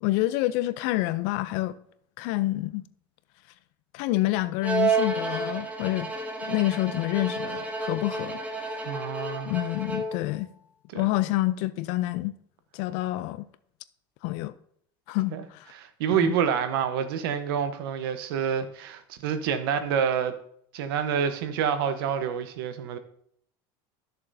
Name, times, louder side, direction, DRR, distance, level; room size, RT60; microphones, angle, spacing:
voice 1, 0.0-1.8 2.2-2.8 3.9-6.1 6.4-8.8 9.4-10.5 10.9-12.3 12.7-13.4 14.2-14.5 15.1-15.7 16.1-16.3, left 17 dB, 60° left, 0.5 m, -28 dB
Bowed string instrument, 4.6-10.3, right 3 dB, 10° right, 1.1 m, -30 dB
voice 2, 8.8-9.5 10.9-11.1 15.3-15.4 15.7-20.4 20.7-23.0, right 7 dB, 80° right, 1.0 m, -28 dB
13.0 x 6.7 x 2.7 m
supercardioid pair, 140°, 12 cm